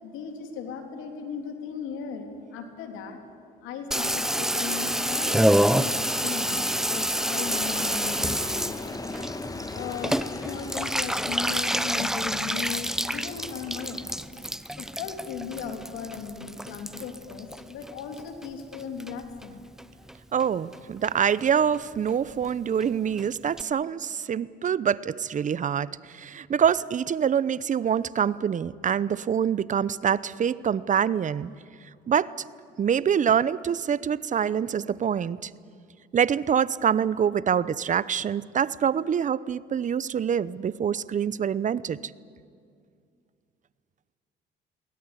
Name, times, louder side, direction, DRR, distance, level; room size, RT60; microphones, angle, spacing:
voice 1, 0.0-3.2 3.6-9.0 9.7-14.2 14.8-19.6, left 6 dB, 80° left, 5 dB, 3.3 m, -37 dB
Water tap faucet / Bathtub (filling or washing), 3.9-18.5 18.7-19.5 19.8-19.9 20.1-20.2 20.4-20.8 21.1-21.2 21.4-21.5 21.7-21.8 22.1-22.2 22.4-22.5 22.8-22.9 23.2-23.3 23.6-23.7, equal, ahead, 0.7 m, -28 dB
Aircraft, 7.5-14.2, left 2 dB, 15° left, 1.5 m, -39 dB
voice 2, 20.3-31.5 32.1-32.3 32.8-35.5 36.1-42.0, right 8 dB, 40° right, 19 dB, 0.8 m, -25 dB
23.0 x 17.5 x 9.9 m, 2.3 s
supercardioid pair, 80°, 21 cm